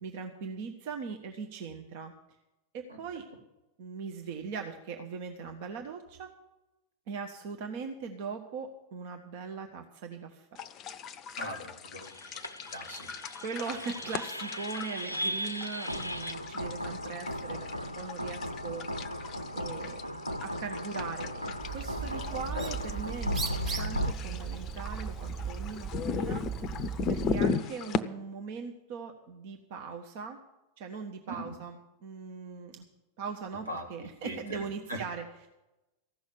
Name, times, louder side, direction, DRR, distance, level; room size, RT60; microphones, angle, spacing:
voice 1, 0.0-2.1 2.7-3.3 3.8-6.3 7.1-10.5 13.4-17.7 18.0-18.9 19.2-20.0 20.4-26.8 27.1-30.4 30.8-32.8 33.2-35.5, right 5 dB, 50° right, 5 dB, 1.1 m, -40 dB
sound 1, 10.6-28.0, left 5 dB, 35° left, 0.6 m, -38 dB
voice 2, 11.4-12.1 12.7-13.1 22.2-22.7 31.3-31.5 33.7-33.9 34.2-34.6 34.9-35.0, equal, 80° right, 1 dB, 2.2 m, -40 dB
sound 2, 12.0-24.1, left 1 dB, 90° left, 0.6 m, -37 dB
Bird, 21.6-27.5, right 6 dB, 30° right, 1.9 m, -37 dB
15.0 x 6.3 x 8.7 m, 0.97 s
figure-of-eight pair, 90°, 0 cm